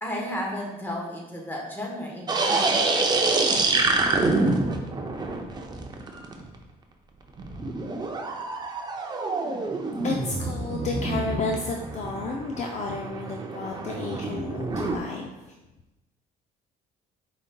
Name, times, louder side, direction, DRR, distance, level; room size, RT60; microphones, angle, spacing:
voice 1, 0.0-2.8, left 1 dB, 10° left, -1 dB, 1.0 m, -33 dB
sound 1, 2.3-6.6 7.4-15.0, right 3 dB, 25° right, 0.5 m, -27 dB
voice 2, 10.0-15.3, left 3 dB, 45° left, 1 dB, 0.4 m, -31 dB
5.0 x 3.9 x 2.2 m, 0.99 s
cardioid pair, 110°, 17 cm